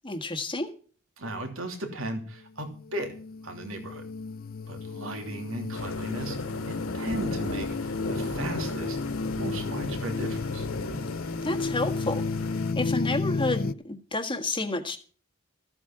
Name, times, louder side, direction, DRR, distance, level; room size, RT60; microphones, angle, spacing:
voice 1, 0.0-0.7 11.4-12.2 12.7-15.0, left 2 dB, 25° left, 1.6 m, -30 dB
voice 2, 1.2-3.1 3.4-4.1 4.7-6.4 6.7-9.0 9.4-10.7, right 1 dB, 70° right, 3.1 m, -36 dB
sound 1, 2.7-13.7, left 4 dB, 45° left, 0.5 m, -32 dB
sound 2, 5.7-12.7, left 2 dB, 80° left, 2.4 m, -36 dB
15.0 x 8.6 x 5.9 m
head